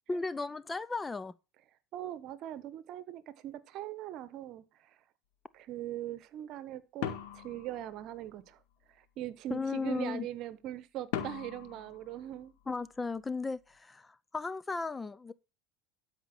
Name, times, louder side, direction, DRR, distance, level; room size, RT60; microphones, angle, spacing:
voice 1, 0.1-1.3 9.5-10.3 12.7-15.3, left 4 dB, 15° left, 0.5 m, -35 dB
voice 2, 1.9-5.0 5.5-7.1 7.3-8.6 8.9-12.5, right 12 dB, 55° right, 1.1 m, -41 dB
sound 1, 7.0-8.5 11.1-12.9, left 9 dB, 75° left, 1.7 m, -40 dB
12.5 x 5.2 x 6.0 m
supercardioid pair, 95°, 0 cm